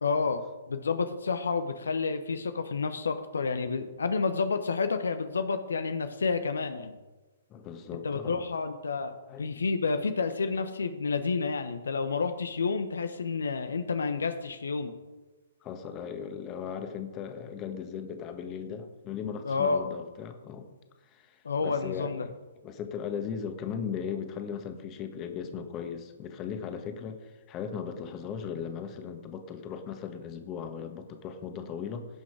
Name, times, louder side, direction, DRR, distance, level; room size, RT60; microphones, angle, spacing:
voice 1, 0.0-7.0 8.0-15.0 19.4-19.9 21.4-22.3, left 4 dB, 75° left, 9 dB, 0.9 m, -30 dB
voice 2, 7.5-8.4 9.3-9.6 15.6-20.7 21.1-22.3 22.6-32.1, left 7 dB, 25° left, 6 dB, 1.5 m, -37 dB
17.0 x 6.2 x 4.9 m, 1.2 s
figure-of-eight pair, 125°, 0 cm